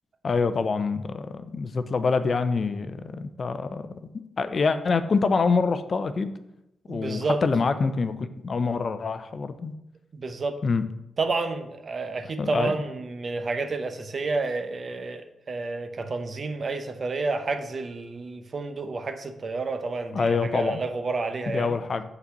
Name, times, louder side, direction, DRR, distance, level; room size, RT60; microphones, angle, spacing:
voice 1, 0.2-3.9 4.4-6.3 6.9-9.7 10.6-10.8 12.2-12.7 20.1-20.8 21.5-22.0, left 4 dB, 50° left, 11 dB, 0.5 m, -26 dB
voice 2, 6.9-7.4 10.1-10.6 11.2-21.8, right 3 dB, 50° right, 8 dB, 0.7 m, -30 dB
5.7 x 4.0 x 5.7 m, 0.86 s
cardioid pair, 85°, 0 cm